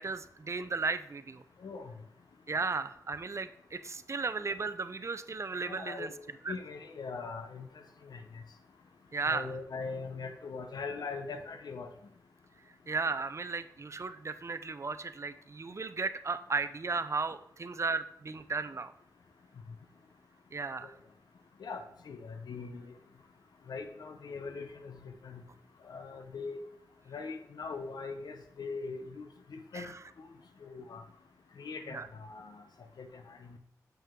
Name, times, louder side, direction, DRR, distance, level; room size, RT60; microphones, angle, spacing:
voice 1, 0.0-1.4 2.5-6.1 6.4-6.5 9.1-9.5 12.9-18.9 20.5-20.9 29.7-30.0 31.9-32.1, right 4 dB, 45° right, 12 dB, 0.5 m, -35 dB
voice 2, 1.6-1.9 5.6-6.1 6.5-8.4 9.2-11.9 20.8-20.9 21.6-22.9 23.7-25.4 25.8-26.6 27.1-29.9 30.6-31.0 31.6-32.6 33.0-33.6, left 4 dB, 85° left, 7 dB, 0.8 m, -41 dB
7.4 x 5.6 x 3.7 m, 0.74 s
cardioid pair, 65°, 7 cm